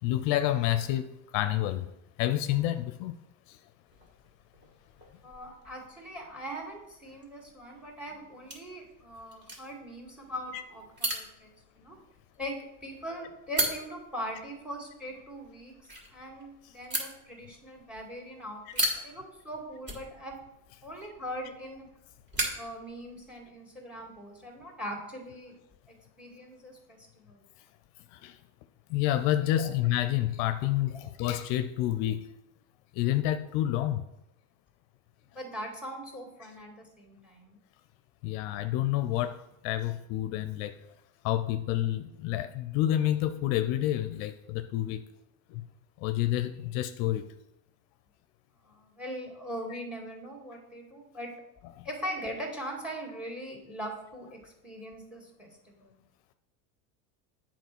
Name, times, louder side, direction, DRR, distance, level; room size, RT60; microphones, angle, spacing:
voice 1, 0.0-1.1 1.3-1.9 2.2-3.1 3.5-3.6 10.5-10.6 16.6-16.7 28.1-28.4 28.9-32.2 32.9-34.0 38.2-40.8 41.2-45.0 45.5-45.6 46.0-47.3 49.7-49.8 51.8-51.9, left 13 dB, 65° left, 10 dB, 0.6 m, -29 dB
sound 1, 3.9-23.5, right 1 dB, 25° right, 2.5 m, -39 dB
voice 2, 5.2-12.0 12.4-15.7 16.1-20.4 20.8-21.8 22.5-25.5 25.9-27.4 29.6-29.7 30.9-31.0 35.3-37.6 48.6-51.3 51.8-56.0, equal, ahead, 1 dB, 2.2 m, -41 dB
8.4 x 4.3 x 6.1 m, 0.85 s
supercardioid pair, 120°, 44 cm